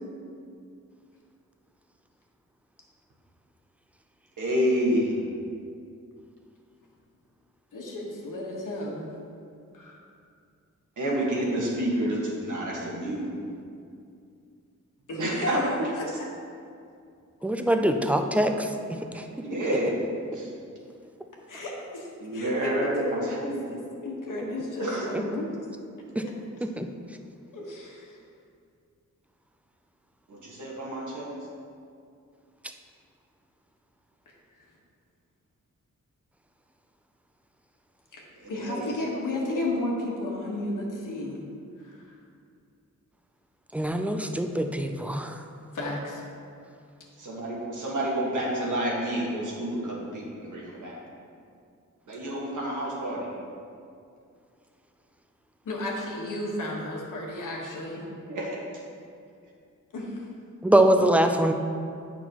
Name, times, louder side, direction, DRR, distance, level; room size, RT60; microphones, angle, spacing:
voice 1, 4.4-5.2 11.0-13.3 15.2-15.9 19.1-19.9 20.3-20.5 22.2-23.5 24.8-25.1 30.3-31.3 38.4-38.9 47.2-51.0 52.1-53.3 58.3-58.6, right 1 dB, 75° right, -4 dB, 1.6 m, -29 dB
voice 2, 7.7-9.1 9.7-10.0 15.1-15.5 15.9-16.0 21.5-25.5 27.5-28.2 34.3-34.4 38.2-41.4 41.8-42.1 45.7-46.2 55.6-58.1 59.9-60.2, left 1 dB, 80° left, -2 dB, 1.4 m, -33 dB
voice 3, 17.4-19.2 26.2-26.3 26.6-26.9 43.7-45.4 60.6-61.5, right 1 dB, 5° right, 5 dB, 0.3 m, -23 dB
9.0 x 6.1 x 3.0 m, 2.4 s
wide cardioid pair, 140°, 31 cm